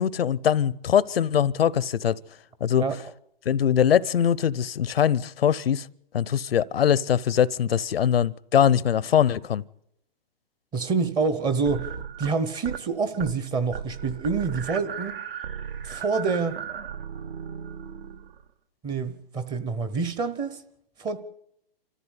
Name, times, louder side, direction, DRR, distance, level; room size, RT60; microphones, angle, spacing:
voice 1, 0.0-2.2 2.6-2.8 3.5-5.9 6.1-9.6, left 9 dB, 80° left, 0.7 m, -22 dB
voice 2, 10.7-11.9 12.2-15.2 15.8-16.6 18.8-20.6 21.0-21.2, right 4 dB, 15° right, 0.8 m, -27 dB
sound 1, 11.7-12.9 13.1-13.5 13.7-18.5, right 7 dB, 70° right, 1.4 m, -36 dB
26.0 x 14.0 x 8.2 m
hypercardioid pair, 145°, 30 cm